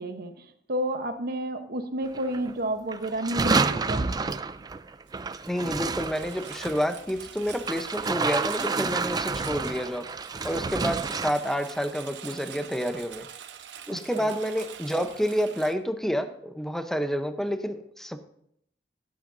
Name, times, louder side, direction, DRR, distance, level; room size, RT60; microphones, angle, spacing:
voice 1, 0.0-4.1 13.9-14.3, right 1 dB, 60° right, 7 dB, 0.9 m, -31 dB
sound 1, 2.0-2.5 2.9-6.9 7.7-11.3, right 4 dB, 25° right, 0.4 m, -29 dB
Engine, 5.1-15.7, right 8 dB, 85° right, 0.9 m, -44 dB
voice 2, 5.5-10.1 10.4-13.3 13.9-18.2, equal, ahead, 8 dB, 0.7 m, -29 dB
16.5 x 9.0 x 2.6 m, 0.71 s
head